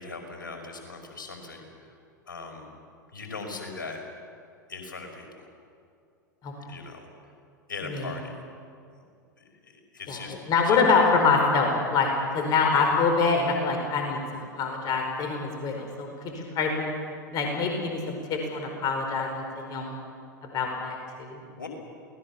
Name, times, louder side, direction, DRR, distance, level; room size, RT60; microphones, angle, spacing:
voice 1, 0.0-1.6 2.3-2.7 3.1-4.0 4.7-5.4 6.7-7.1 7.7-8.4 9.4-10.3 10.6-10.8 21.6-21.7, left 4 dB, 80° left, 3 dB, 5.1 m, -39 dB
voice 2, 10.1-16.9 17.3-19.4 19.7-20.0 20.5-21.4, left 4 dB, 40° left, 2 dB, 4.8 m, -25 dB
28.0 x 19.5 x 7.1 m, 2.3 s
figure-of-eight pair, 90°, 11 cm